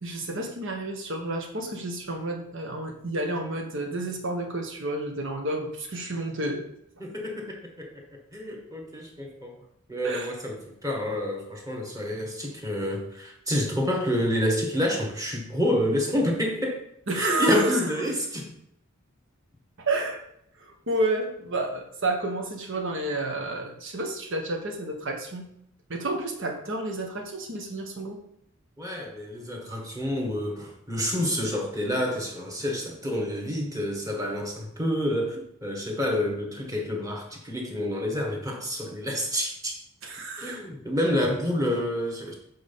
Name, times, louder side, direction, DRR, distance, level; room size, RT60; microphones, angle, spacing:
voice 1, 0.0-6.7 10.0-10.3 17.1-18.1 19.8-20.2 20.6-25.5 25.9-28.2 40.0-40.6, right 2 dB, 60° right, 3 dB, 1.4 m, -30 dB
voice 2, 7.0-9.5 9.9-16.8 17.1-18.5 28.8-39.7 40.4-42.4, equal, 15° right, 0 dB, 1.6 m, -28 dB
7.7 x 4.0 x 5.6 m, 0.74 s
head